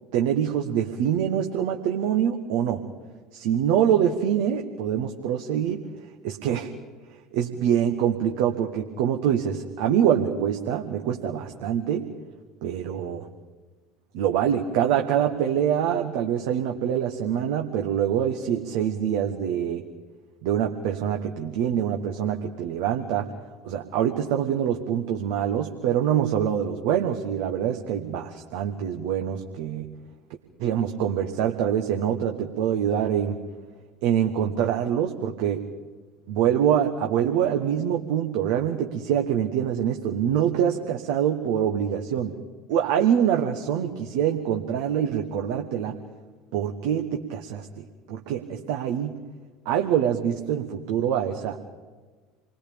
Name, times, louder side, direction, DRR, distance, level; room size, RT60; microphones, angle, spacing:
voice 1, 0.1-2.8 3.3-5.9 6.2-6.7 7.3-12.1 12.6-13.3 14.1-19.8 20.4-23.3 23.6-29.9 30.6-33.4 34.0-35.6 36.3-42.4 42.7-46.0 46.5-49.2 49.6-51.6, right 9 dB, 60° right, 3 dB, 1.4 m, -25 dB
28.5 x 21.0 x 5.2 m, 1.4 s
figure-of-eight pair, 70°, 0 cm